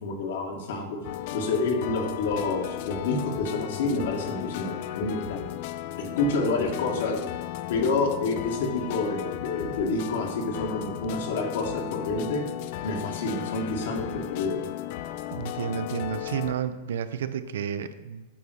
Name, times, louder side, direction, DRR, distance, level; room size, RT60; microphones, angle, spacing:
voice 1, 0.0-5.5 6.0-7.2 7.7-12.4 12.8-14.6, left 3 dB, 75° left, 1 dB, 2.0 m, -28 dB
sound 1, 1.0-16.5, left 13 dB, 55° left, 0.4 m, -35 dB
voice 2, 15.3-18.3, right 8 dB, 80° right, 11 dB, 0.6 m, -31 dB
8.6 x 4.0 x 6.4 m, 1.2 s
hypercardioid pair, 135°, 0 cm